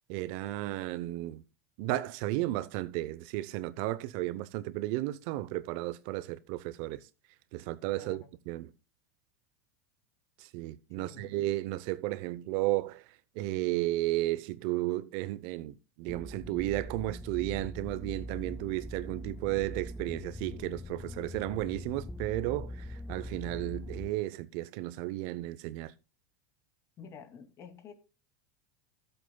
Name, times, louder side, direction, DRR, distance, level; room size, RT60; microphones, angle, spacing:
voice 1, 0.1-1.4 1.8-7.0 7.5-8.7 10.4-13.1 13.3-25.9, right 16 dB, 60° right, 0.7 m, -33 dB
voice 2, 7.9-8.3 11.0-11.3 27.0-27.9, left 7 dB, 35° left, 2.5 m, -50 dB
sound 1, 16.1-24.1, equal, 5° left, 0.5 m, -42 dB
16.0 x 8.0 x 2.3 m
supercardioid pair, 125°, 8 cm